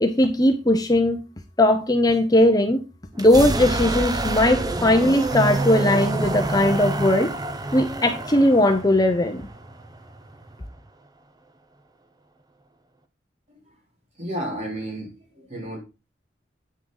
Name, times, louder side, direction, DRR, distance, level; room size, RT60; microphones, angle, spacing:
voice 1, 0.0-1.2 1.6-2.8 3.2-7.3 7.7-9.4, left 1 dB, 20° left, 6 dB, 0.8 m, -19 dB
sound 1, 3.1-10.9, right 2 dB, 20° right, 0.8 m, -29 dB
Keyboard (musical), 5.3-8.2, right 2 dB, 65° right, 2.0 m, -30 dB
voice 2, 14.1-15.8, right 1 dB, 40° right, -2 dB, 4.1 m, -33 dB
8.8 x 6.5 x 4.0 m, 0.28 s
head